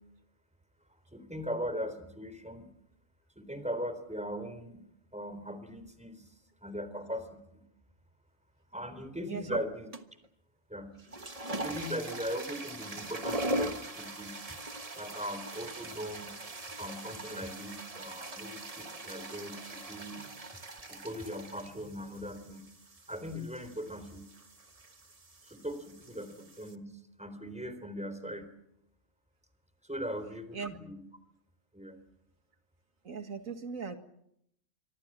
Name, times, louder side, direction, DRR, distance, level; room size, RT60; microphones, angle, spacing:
voice 1, 1.1-2.7 3.4-4.9 5.1-6.3 6.6-7.6 8.7-9.9 10.7-10.9 11.5-14.3 14.9-16.3 16.8-20.2 20.9-22.7 23.1-24.3 25.4-28.5 29.8-31.0 31.7-32.0, equal, 5° right, 10 dB, 3.8 m, -39 dB
voice 2, 9.3-9.6 30.5-30.7 33.0-34.0, right 5 dB, 90° right, 7 dB, 2.3 m, -38 dB
sound 1, 9.9-10.3 10.9-26.8, right 1 dB, 30° right, 1.4 m, -41 dB
26.0 x 24.5 x 7.5 m, 0.77 s
omnidirectional pair, 1.4 m